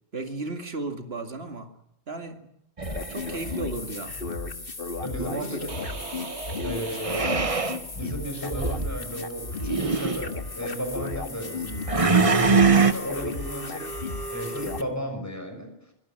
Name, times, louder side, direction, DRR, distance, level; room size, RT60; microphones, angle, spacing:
voice 1, 0.1-1.7 2.1-2.5 3.1-4.2 5.3-5.7, right 3 dB, 65° right, 6 dB, 2.5 m, -34 dB
sound 1, 2.8-14.8, left 3 dB, 55° left, 1.8 m, -34 dB
sound 2, 2.8-3.6 7.0-7.8 8.5-8.9 9.6-10.2 11.9-12.9, right 4 dB, 30° right, 1.2 m, -22 dB
voice 2, 5.0-5.7 6.6-7.4 7.9-15.9, equal, 15° left, 5 dB, 6.0 m, -34 dB
sound 3, 5.7-8.3, right 4 dB, 90° right, 1.8 m, -39 dB
25.0 x 17.5 x 8.9 m, 0.79 s
omnidirectional pair, 1.1 m